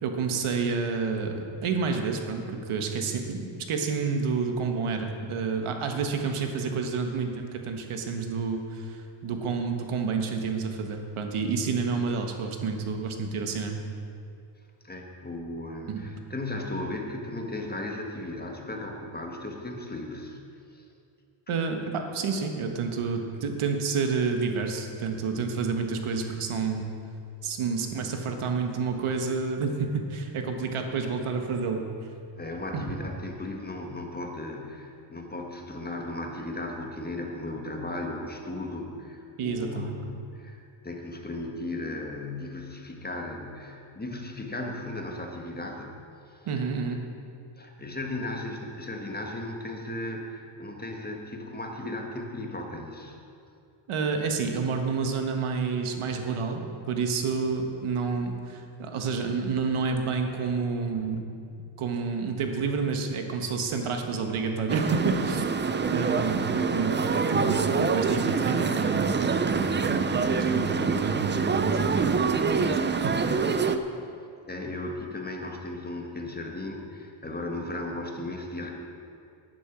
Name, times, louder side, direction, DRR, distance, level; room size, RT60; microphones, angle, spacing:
voice 1, 0.0-13.8 15.9-16.0 21.5-26.9 27.4-31.8 32.7-32.8 39.4-40.0 46.5-47.0 53.9-61.2 61.8-65.4 65.9-72.7 73.0-73.1, right 5 dB, 80° right, 4 dB, 1.5 m, -29 dB
voice 2, 14.8-20.4 20.7-20.8 32.4-46.0 46.3-46.5 47.6-53.2 66.1-66.7 74.5-78.7, left 2 dB, 20° left, 2 dB, 1.6 m, -36 dB
sound 1, 64.7-73.8, right 5 dB, 25° right, 0.5 m, -26 dB
11.0 x 10.5 x 6.1 m, 2.5 s
cardioid pair, 115°, 49 cm